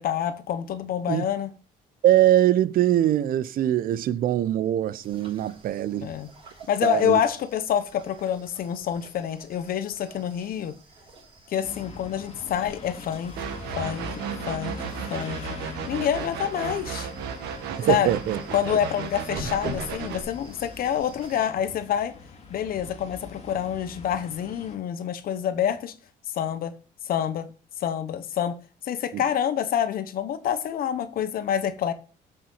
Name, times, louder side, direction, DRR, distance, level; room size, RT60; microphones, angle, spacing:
voice 1, 0.0-1.5 6.0-6.3 6.7-10.7 11.5-13.4 13.8-14.0 14.5-14.7 15.1-15.4 15.9-17.1 17.9-18.1 18.5-22.1 22.5-25.9 26.3-26.7 27.0-27.4 27.8-28.6 28.8-31.9, left 9 dB, 60° left, 1.0 m, -27 dB
voice 2, 2.0-6.1 6.8-7.2 17.7-18.4 29.1-29.2, right 12 dB, 60° right, 0.6 m, -22 dB
sound 1, 5.0-21.5, right 1 dB, 35° right, 4.7 m, -46 dB
sound 2, 11.6-24.8, left 4 dB, 40° left, 2.3 m, -42 dB
sound 3, 13.4-20.2, right 7 dB, 80° right, 1.4 m, -34 dB
8.1 x 5.9 x 5.6 m
cardioid pair, 110°, 17 cm